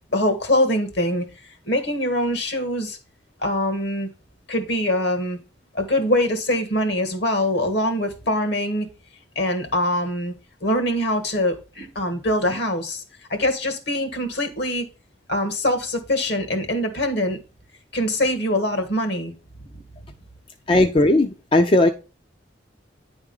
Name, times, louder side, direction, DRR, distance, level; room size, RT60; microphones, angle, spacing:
voice 1, 0.1-3.0 3.4-4.1 4.5-5.4 5.7-8.9 9.3-10.3 10.6-13.0 13.3-14.8 15.3-17.4 17.9-19.3, left 1 dB, 65° left, 1.6 m, -23 dB
voice 2, 20.7-21.9, left 2 dB, 30° left, 0.5 m, -17 dB
9.6 x 3.6 x 5.3 m
head